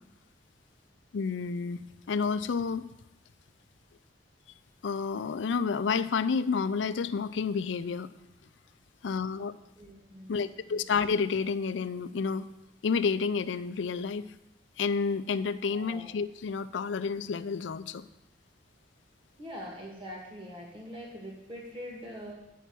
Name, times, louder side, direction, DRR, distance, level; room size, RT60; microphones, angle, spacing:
voice 1, 1.1-2.8 4.8-8.1 9.0-9.5 10.3-12.5 12.8-14.3 14.8-18.1, left 5 dB, 80° left, 14 dB, 0.4 m, -30 dB
voice 2, 9.8-10.8 15.7-16.1 19.4-22.3, equal, 30° right, -2 dB, 1.7 m, -43 dB
9.2 x 5.8 x 6.1 m, 0.90 s
head